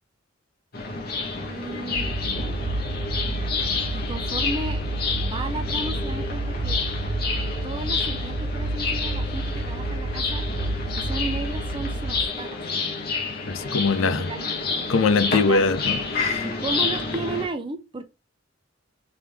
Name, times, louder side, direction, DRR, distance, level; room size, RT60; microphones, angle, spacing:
sound 1, 0.7-17.5, left 4 dB, 50° left, 1.0 m, -29 dB
voice 1, 1.5-2.1 3.9-6.8 7.6-10.4 10.8-12.6 14.0-14.6 15.5-15.6 16.4-18.0, right 2 dB, 25° right, 0.6 m, -34 dB
sound 2, 1.9-12.3, right 2 dB, 70° right, 0.5 m, -29 dB
voice 2, 13.5-14.3 14.9-16.5, left 4 dB, 75° left, 0.5 m, -22 dB
3.4 x 3.4 x 3.3 m
head